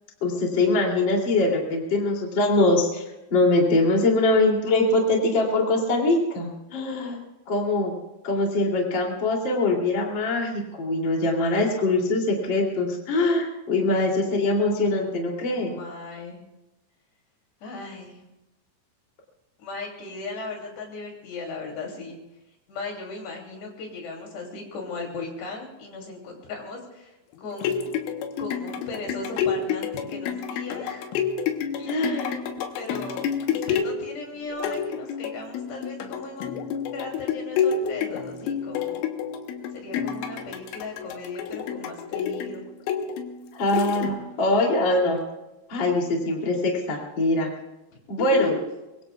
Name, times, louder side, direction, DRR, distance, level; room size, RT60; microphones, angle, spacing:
voice 1, 0.2-3.0 3.3-7.2 7.5-7.9 8.2-15.7 31.9-32.3 43.5-45.2 45.7-47.5 48.1-48.5, left 2 dB, 30° left, -1 dB, 2.9 m, -23 dB
voice 2, 6.7-7.2 15.5-16.4 17.6-18.2 19.6-22.2 22.7-28.0 28.4-31.1 31.8-32.4 32.7-36.6 36.9-39.0 39.7-42.6 48.2-48.6, left 3 dB, 65° left, 0 dB, 4.9 m, -37 dB
sound 1, 27.3-44.5 45.0-45.1, left 7 dB, 90° left, 3.7 m, -29 dB
24.0 x 23.5 x 2.4 m, 0.98 s
omnidirectional pair, 5.5 m